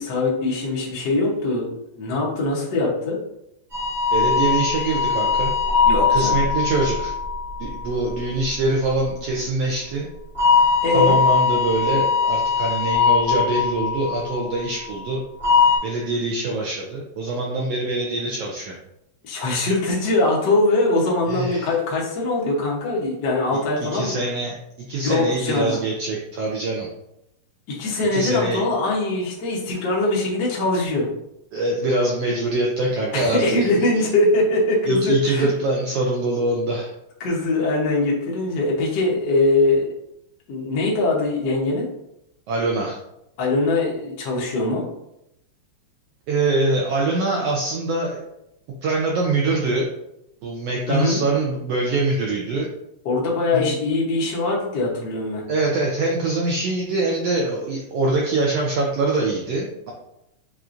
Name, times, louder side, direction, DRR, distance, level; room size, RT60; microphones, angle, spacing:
voice 1, 0.0-3.2 5.9-6.4 10.8-11.2 19.2-24.2 25.0-25.8 27.7-31.1 33.1-35.5 37.2-39.9 40.5-41.9 43.4-44.9 50.9-51.2 53.0-55.4, left 2 dB, 85° left, -4 dB, 0.9 m, -22 dB
sound 1, 3.7-8.2 10.3-14.6 15.4-15.8, left 5 dB, 35° right, 0.7 m, -20 dB
voice 2, 4.1-5.5 6.1-7.1 7.6-10.1 10.9-15.2 15.8-18.8 21.3-21.7 23.5-23.6 23.9-26.9 28.1-28.6 31.5-34.0 34.9-36.9 42.5-43.0 46.3-48.2 48.8-49.9 50.4-52.7 53.5-53.7 55.5-59.9, right 2 dB, 80° right, -2 dB, 1.4 m, -24 dB
7.2 x 2.5 x 2.5 m, 0.83 s
omnidirectional pair, 3.4 m